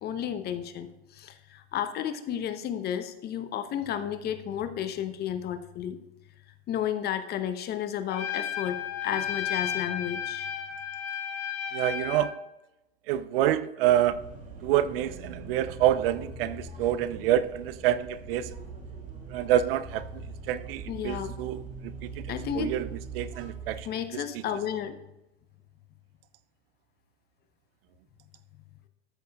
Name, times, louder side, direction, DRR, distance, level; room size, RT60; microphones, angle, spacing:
voice 1, 0.0-6.0 6.7-10.5 20.9-21.3 22.3-22.8 23.8-24.9, left 9 dB, 30° left, 0.8 m, -32 dB
Trumpet, 8.1-12.3, left 9 dB, 65° left, 1.7 m, -33 dB
voice 2, 11.7-12.4 13.1-14.2 14.6-18.5 19.3-20.1 20.5-21.6 22.2-22.3 22.6-22.9 23.1-23.9, right 12 dB, 60° right, 0.5 m, -27 dB
sound 1, 14.0-23.8, right 4 dB, 25° right, 2.1 m, -42 dB
13.5 x 6.8 x 2.3 m
hypercardioid pair, 120°, 33 cm